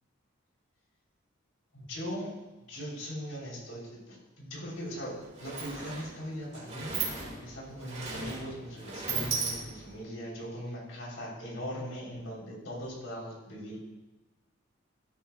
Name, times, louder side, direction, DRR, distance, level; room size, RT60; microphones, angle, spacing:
voice 1, 1.7-2.3 2.7-7.0 7.4-13.8, equal, 70° left, -3 dB, 3.9 m, -40 dB
Sliding door, 4.7-4.8 5.1-10.0, right 4 dB, 35° right, 2.2 m, -37 dB
12.5 x 12.5 x 2.4 m, 1.1 s
head